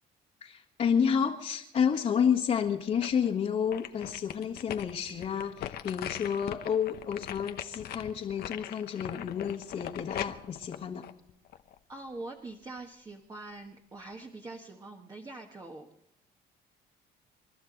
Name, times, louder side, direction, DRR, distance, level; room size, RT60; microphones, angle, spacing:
voice 1, 0.4-11.1, left 7 dB, 50° left, -5 dB, 1.7 m, -30 dB
sound 1, 2.5-3.3 3.7-11.8 12.2-12.3, left 11 dB, 65° left, 0.9 m, -40 dB
voice 2, 11.9-15.9, right 2 dB, 20° right, 2 dB, 1.5 m, -44 dB
29.0 x 12.0 x 4.0 m, 0.75 s
cardioid pair, 110°, 17 cm